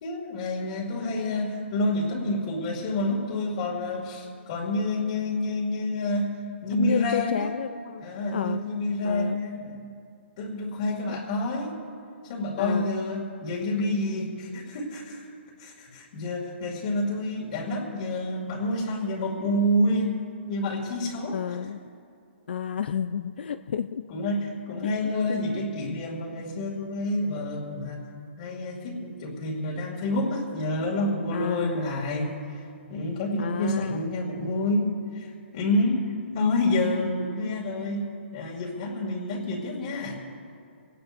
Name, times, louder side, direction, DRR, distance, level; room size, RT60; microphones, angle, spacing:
voice 1, 0.0-6.3 6.6-7.5 8.0-9.9 10.4-11.8 12.2-15.2 15.6-21.6 24.1-28.0 28.4-32.4 32.9-38.0 38.3-40.2, left 1 dB, 35° left, -4 dB, 2.4 m, -28 dB
voice 2, 6.7-8.0 8.3-8.7 9.0-9.4 11.1-11.2 12.6-12.9 21.3-21.8 22.5-24.0 25.3-25.5 31.3-31.8 33.4-34.1, left 8 dB, 60° left, 10 dB, 0.5 m, -31 dB
25.0 x 18.0 x 2.6 m, 2.5 s
hypercardioid pair, 170°, 6 cm